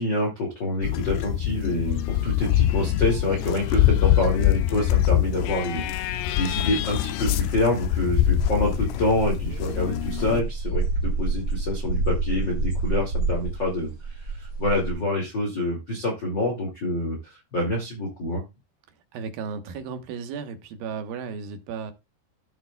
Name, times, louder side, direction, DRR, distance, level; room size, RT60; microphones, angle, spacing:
voice 1, 0.0-18.4, left 1 dB, 35° left, 2.1 m, -27 dB
sound 1, 0.8-10.4, left 12 dB, 80° left, 2.7 m, -24 dB
sound 2, 4.2-4.3 5.2-5.3 5.9-6.0 6.2-6.7 7.3-14.9, right 3 dB, 25° right, 2.6 m, -29 dB
voice 2, 19.1-21.9, right 6 dB, 65° right, 2.6 m, -34 dB
14.5 x 7.2 x 2.3 m
omnidirectional pair, 5.0 m